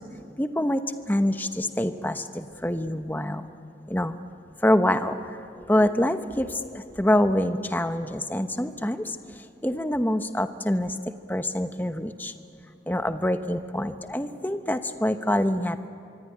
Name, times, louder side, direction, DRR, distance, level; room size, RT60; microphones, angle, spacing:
voice 1, 0.4-0.8 1.1-3.5 3.9-4.2 4.6-11.0 11.3-12.3 12.9-15.9, left 1 dB, 10° left, 8 dB, 1.0 m, -26 dB
25.5 x 23.5 x 9.9 m, 2.4 s
head